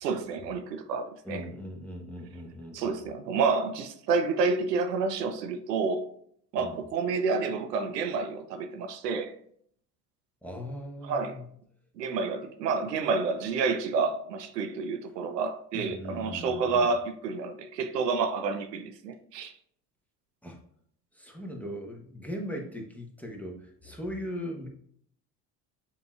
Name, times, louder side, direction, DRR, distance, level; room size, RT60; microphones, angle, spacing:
voice 1, 0.0-1.5 2.7-6.1 6.5-9.4 11.0-11.4 12.0-19.5, right 4 dB, 90° right, 0.5 m, -29 dB
voice 2, 1.2-3.0 6.5-6.8 10.4-11.4 15.7-16.9 20.4-20.6 21.1-24.7, equal, 5° left, 1.0 m, -39 dB
7.0 x 2.9 x 2.4 m
hypercardioid pair, 60°, 48 cm